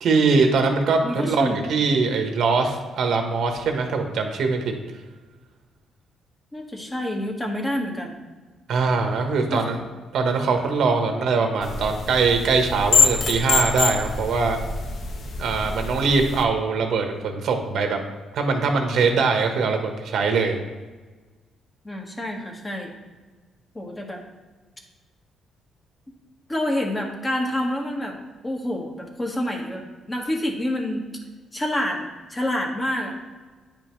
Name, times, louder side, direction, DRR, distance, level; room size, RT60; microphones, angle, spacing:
voice 1, 0.0-4.7 8.7-9.8 10.1-14.6 15.4-18.0 18.3-20.6, right 4 dB, 70° right, 4 dB, 1.2 m, -22 dB
voice 2, 1.0-1.6 6.5-8.1 9.5-9.6 21.8-22.9 23.7-24.2 26.5-28.2 28.4-31.0 31.5-33.2, left 1 dB, 20° left, 0 dB, 1.5 m, -27 dB
sound 1, 11.6-16.4, left 4 dB, 55° left, 1.0 m, -25 dB
9.5 x 5.3 x 3.2 m, 1.3 s
cardioid pair, 90°, 0 cm